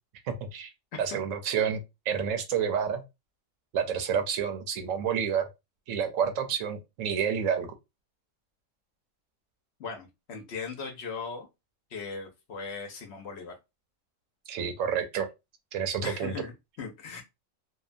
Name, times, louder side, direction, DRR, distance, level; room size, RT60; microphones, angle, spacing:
voice 1, 0.2-0.7 1.0-3.0 3.7-5.5 5.9-7.7 14.5-15.3 15.7-16.3, right 7 dB, 80° right, 1.0 m, -29 dB
voice 2, 9.8-11.5 11.9-13.6 16.0-17.2, left 5 dB, 60° left, 0.8 m, -38 dB
2.7 x 2.2 x 2.5 m
omnidirectional pair, 1.4 m